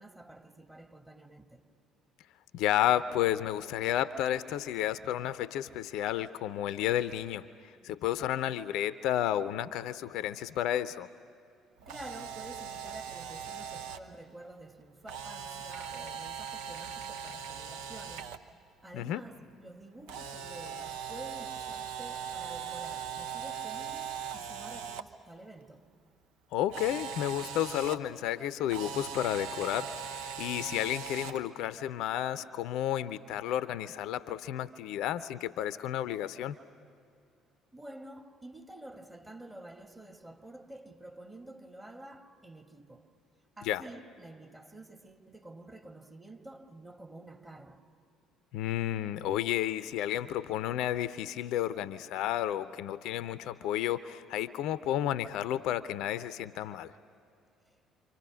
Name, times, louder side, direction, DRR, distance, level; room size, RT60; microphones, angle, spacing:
voice 1, 0.0-1.6 11.8-18.4 18.8-25.9 37.7-43.1 43.6-47.8 57.7-57.8, right 1 dB, 15° right, 2.2 m, -49 dB
voice 2, 2.5-11.1 18.9-19.2 26.5-36.6 43.7-43.8 48.5-56.9, left 12 dB, 65° left, 0.6 m, -32 dB
Camera, 11.8-14.0 15.1-18.4 20.1-25.0 26.7-28.0 28.7-31.4, right 7 dB, 70° right, 0.9 m, -40 dB
29.0 x 26.0 x 6.3 m
hypercardioid pair, 55°, 0 cm